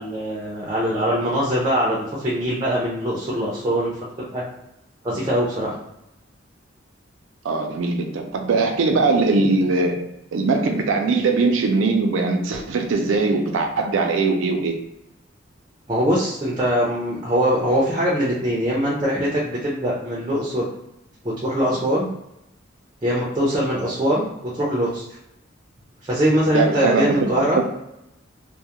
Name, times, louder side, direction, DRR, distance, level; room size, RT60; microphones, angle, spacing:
voice 1, 0.0-4.4 5.0-5.7 15.9-20.7 21.2-22.1 23.0-25.0 26.0-27.6, equal, 25° right, -5 dB, 0.4 m, -22 dB
voice 2, 7.4-10.0 10.3-14.7 26.5-27.3, right 3 dB, 85° right, 3 dB, 0.4 m, -21 dB
2.2 x 2.0 x 2.8 m, 0.84 s
head